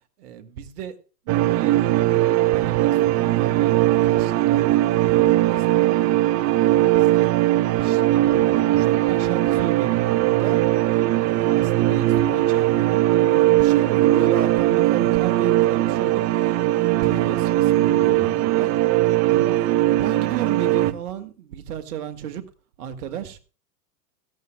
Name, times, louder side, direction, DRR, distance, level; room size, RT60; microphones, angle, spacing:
voice 1, 0.2-1.0 1.3-1.8 2.3-6.0 6.6-10.6 11.2-18.7 19.3-22.4 22.8-23.4, right 9 dB, 70° right, 1.9 m, -34 dB
sound 1, 1.3-20.9, right 15 dB, 35° right, 0.8 m, -19 dB
17.0 x 14.0 x 2.2 m
hypercardioid pair, 100°, 47 cm